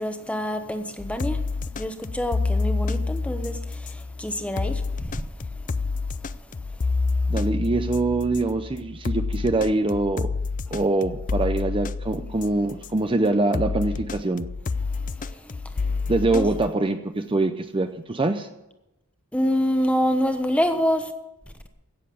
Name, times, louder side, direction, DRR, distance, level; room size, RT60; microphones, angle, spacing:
voice 1, 0.0-5.8 6.8-6.9 15.2-16.0 16.3-16.5 19.3-21.1, equal, 5° left, 1.1 m, -27 dB
sound 1, 1.0-13.0 13.5-16.7, left 4 dB, 35° left, 0.4 m, -28 dB
voice 2, 7.3-10.3 10.7-14.5 16.1-18.5, right 2 dB, 25° right, 0.6 m, -24 dB
16.5 x 7.4 x 8.5 m
head